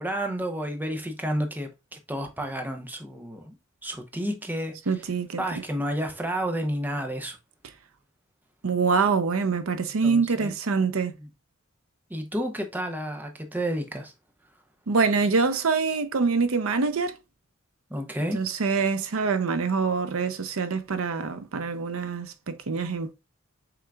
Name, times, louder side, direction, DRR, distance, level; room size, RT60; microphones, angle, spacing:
voice 1, 0.0-3.6 3.8-5.0 5.4-7.4 10.0-10.5 11.2-11.3 12.1-14.1 17.9-18.4, equal, 10° right, 0.6 m, -31 dB
voice 2, 4.9-5.4 8.6-11.1 14.9-17.1 18.3-23.1, right 4 dB, 70° right, 0.6 m, -25 dB
5.9 x 3.6 x 2.3 m
head